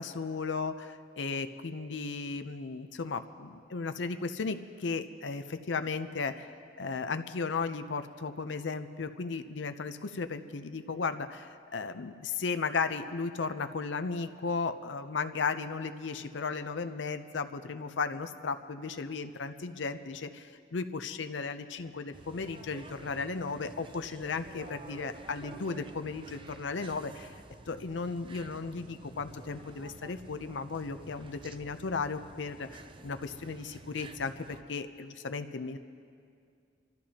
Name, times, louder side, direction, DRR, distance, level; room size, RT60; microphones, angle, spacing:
voice 1, 0.0-27.4 27.7-35.8, left 4 dB, 75° left, 9 dB, 0.6 m, -35 dB
sound 1, 22.1-34.6, right 2 dB, 25° right, 0.5 m, -50 dB
29.0 x 14.0 x 2.9 m, 2.3 s
head